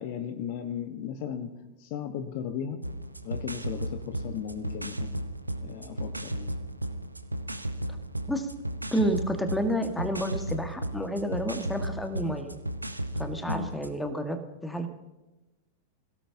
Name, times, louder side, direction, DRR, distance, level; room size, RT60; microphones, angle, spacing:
voice 1, 0.0-1.5 1.8-2.8 3.2-5.1 5.6-6.5 13.4-13.7, left 8 dB, 50° left, 9 dB, 1.3 m, -36 dB
sound 1, 2.8-14.0, right 1 dB, 85° right, 1.0 m, -35 dB
voice 2, 8.9-12.6 13.2-14.9, equal, 5° left, 6 dB, 1.7 m, -30 dB
26.5 x 17.0 x 2.9 m, 1.0 s
figure-of-eight pair, 90°, 0 cm